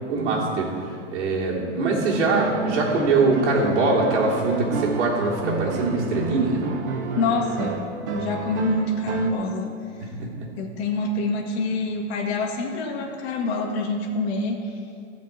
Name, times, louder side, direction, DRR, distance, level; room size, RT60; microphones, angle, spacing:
voice 1, 0.1-6.6 10.2-10.3, right 3 dB, 65° right, -3 dB, 3.2 m, -22 dB
sound 1, 2.1-9.3, right 4 dB, 20° right, 0.3 m, -30 dB
voice 2, 7.1-7.8 8.1-9.7 10.6-14.8, left 2 dB, 55° left, -1 dB, 1.9 m, -26 dB
15.0 x 5.3 x 8.4 m, 2.3 s
supercardioid pair, 170°, 37 cm